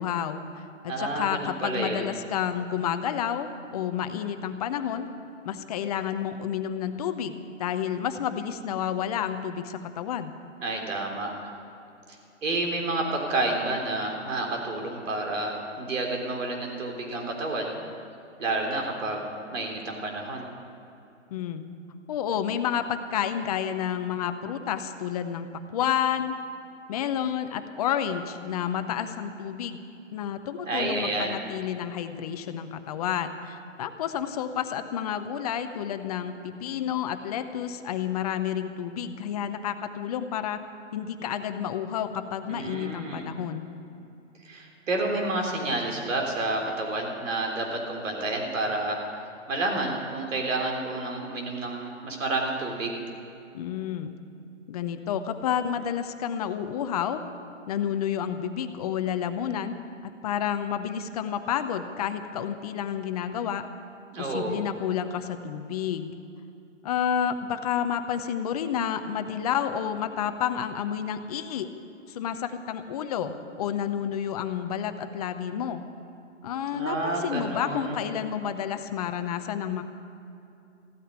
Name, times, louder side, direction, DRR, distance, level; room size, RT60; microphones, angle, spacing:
voice 1, 0.0-5.1 5.4-10.3 21.3-21.6 22.1-25.5 25.7-26.3 26.9-29.8 30.1-40.6 40.9-43.6 53.5-54.1 54.7-57.2 57.7-59.8 60.0-63.6 64.2-66.1 66.8-71.7 72.1-75.8 76.4-79.8, left 9 dB, 30° left, 9 dB, 0.7 m, -30 dB
voice 2, 0.9-2.1 10.6-11.5 12.4-17.7 18.4-20.5 30.6-31.4 42.5-43.3 44.4-49.0 49.5-53.0 64.1-64.6 76.7-78.0, right 2 dB, 70° right, 1 dB, 3.5 m, -30 dB
15.0 x 9.2 x 9.5 m, 2.7 s
hypercardioid pair, 150°, 39 cm